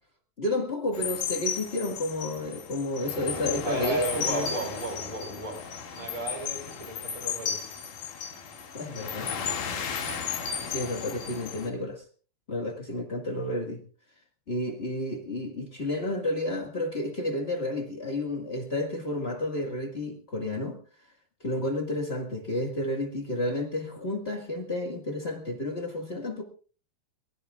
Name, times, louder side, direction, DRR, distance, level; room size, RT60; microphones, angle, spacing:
voice 1, 0.4-4.5 8.7-9.3 10.7-12.0 12.5-13.8 14.5-20.8 21.4-26.4, left 1 dB, 80° left, 2 dB, 0.5 m, -31 dB
sound 1, 0.9-11.7, left 7 dB, 60° left, 3.6 m, -34 dB
voice 2, 3.6-5.6 5.9-7.6, right 2 dB, 10° right, 4 dB, 4.4 m, -34 dB
23.0 x 20.0 x 2.4 m, 0.40 s
omnidirectional pair, 4.5 m